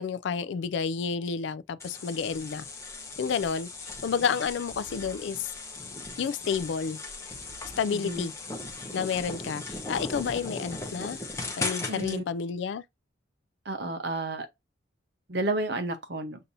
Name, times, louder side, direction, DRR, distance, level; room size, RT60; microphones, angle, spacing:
voice 1, 0.0-2.7 3.2-5.5 6.2-7.0 7.8-8.3 8.9-11.2 11.6-12.8, left 6 dB, 60° left, 0.3 m, -30 dB
sound 1, 1.8-12.2, left 3 dB, 15° left, 0.8 m, -38 dB
voice 2, 7.9-8.3 11.9-12.2 13.6-14.5 15.3-16.4, right 2 dB, 55° right, 0.9 m, -31 dB
6.6 x 2.7 x 2.6 m
head